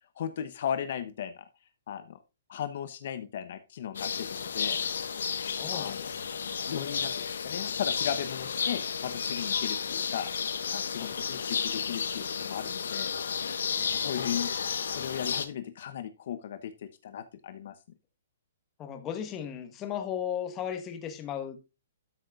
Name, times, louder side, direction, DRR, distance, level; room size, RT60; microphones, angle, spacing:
voice 1, 0.2-1.4 1.9-2.2 2.5-4.8 5.7-6.1 6.7-10.3 10.7-13.2 13.9-14.5 14.8-17.7, left 9 dB, 50° left, 0.9 m, -36 dB
sound 1, 3.9-15.5, left 6 dB, 80° left, 1.2 m, -32 dB
voice 2, 5.4-6.3 11.0-11.1 13.7-14.3 18.8-21.7, left 9 dB, 20° left, 1.3 m, -37 dB
12.5 x 6.5 x 2.4 m
hypercardioid pair, 170°, 0 cm